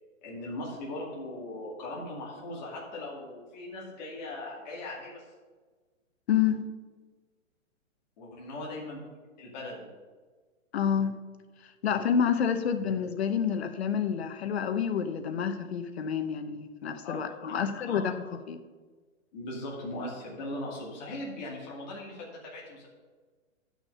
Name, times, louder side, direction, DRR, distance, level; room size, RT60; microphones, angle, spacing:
voice 1, 0.2-5.2 8.2-9.0 9.4-9.9 17.0-18.1 19.3-22.9, left 1 dB, 35° left, -4 dB, 2.2 m, -39 dB
voice 2, 6.3-6.7 10.7-11.1 11.8-18.6, left 7 dB, 50° left, 9 dB, 0.9 m, -28 dB
10.0 x 6.2 x 5.5 m, 1.4 s
hypercardioid pair, 170°, 41 cm